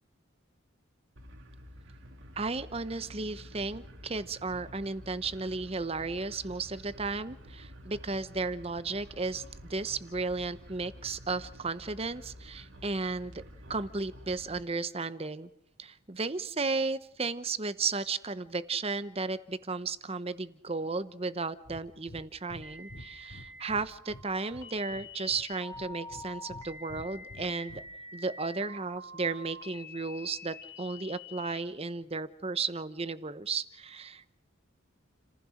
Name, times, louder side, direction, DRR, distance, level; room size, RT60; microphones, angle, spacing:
sound 1, 1.2-14.6, equal, 75° right, 2.6 m, -50 dB
voice 1, 2.4-13.4 13.7-15.5 15.8-27.8 28.1-34.3, right 4 dB, 30° right, 13 dB, 0.9 m, -34 dB
Breathing, 21.6-21.8 22.1-22.2 22.5-22.6 22.9-24.3 24.5-25.4 25.7-26.6 26.9-27.8, left 1 dB, 70° left, 2.5 m, -48 dB
sound 2, 22.6-31.6, left 2 dB, 15° left, 3.1 m, -47 dB
29.5 x 15.5 x 6.5 m, 0.79 s
head